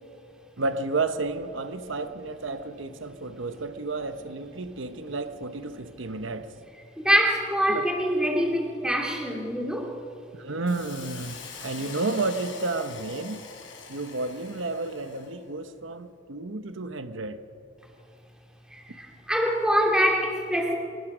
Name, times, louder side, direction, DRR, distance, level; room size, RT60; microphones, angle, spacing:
voice 1, 0.6-6.5 7.7-7.9 10.3-13.4 13.9-17.4, right 3 dB, 85° right, 1.0 m, -31 dB
voice 2, 7.0-9.9 18.7-20.7, equal, 5° right, 2.8 m, -24 dB
Hiss, 10.7-15.4, left 6 dB, 90° left, 4.6 m, -44 dB
25.0 x 20.0 x 6.2 m
head